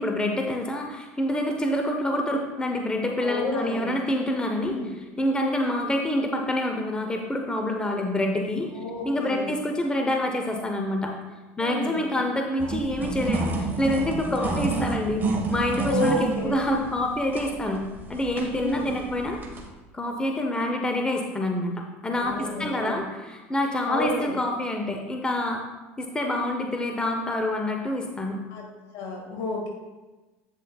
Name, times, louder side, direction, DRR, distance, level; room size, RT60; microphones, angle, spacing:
voice 1, 0.0-4.7 5.2-8.7 9.0-11.1 11.6-17.8 18.1-19.4 19.9-25.6 26.0-28.4, left 1 dB, 15° left, 3 dB, 0.8 m, -27 dB
voice 2, 3.2-3.9 4.6-4.9 8.7-9.5 11.6-12.0 14.5-14.7 15.9-16.6 18.5-19.0 22.1-23.0 23.9-24.4 28.5-28.6 28.9-29.7, left 2 dB, 70° left, 1 dB, 1.8 m, -31 dB
sound 1, 12.6-19.7, right 4 dB, 30° right, 1.5 m, -30 dB
8.2 x 7.5 x 2.4 m, 1.2 s
supercardioid pair, 90°, 7 cm